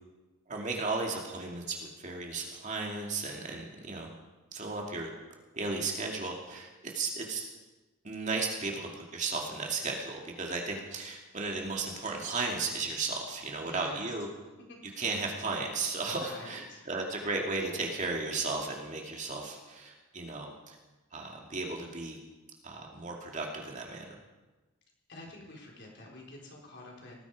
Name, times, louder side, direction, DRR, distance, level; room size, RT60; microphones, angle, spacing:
voice 1, 0.5-4.1 4.5-5.1 5.5-7.5 8.0-14.3 14.8-20.8 21.1-22.2 22.6-24.1, right 3 dB, 35° right, 0 dB, 2.4 m, -35 dB
voice 2, 13.6-14.0 14.7-15.0 16.1-16.8 25.1-27.2, left 1 dB, 55° left, -2 dB, 4.3 m, -48 dB
18.5 x 15.5 x 4.9 m, 1.1 s
head